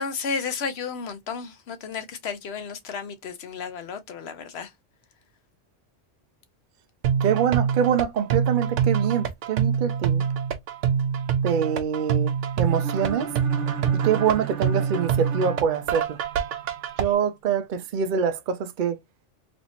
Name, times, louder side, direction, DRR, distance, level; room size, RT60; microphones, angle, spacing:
voice 1, 0.0-4.7, left 5 dB, 65° left, 1.0 m, -32 dB
sound 1, 7.0-17.0, right 7 dB, 90° right, 1.0 m, -25 dB
voice 2, 7.2-10.2 11.4-12.3 12.6-13.3 14.0-16.2 17.0-19.0, right 8 dB, 55° right, 0.6 m, -24 dB
sound 2, 12.7-16.6, right 8 dB, 75° right, 1.2 m, -34 dB
3.2 x 3.0 x 2.7 m
omnidirectional pair, 1.2 m